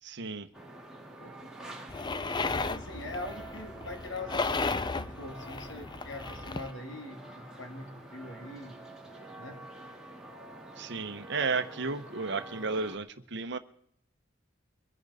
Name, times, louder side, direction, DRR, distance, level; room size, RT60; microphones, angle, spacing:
voice 1, 0.0-0.5 10.8-13.6, right 4 dB, 60° right, 9 dB, 0.9 m, -33 dB
sound 1, 0.5-13.0, right 1 dB, 5° right, 2.3 m, -47 dB
voice 2, 1.2-1.5 2.0-8.8 9.4-9.6, left 2 dB, 65° left, 5 dB, 2.3 m, -43 dB
sound 2, 1.9-6.7, left 3 dB, 20° left, 0.5 m, -34 dB
24.0 x 10.5 x 4.2 m, 0.67 s
head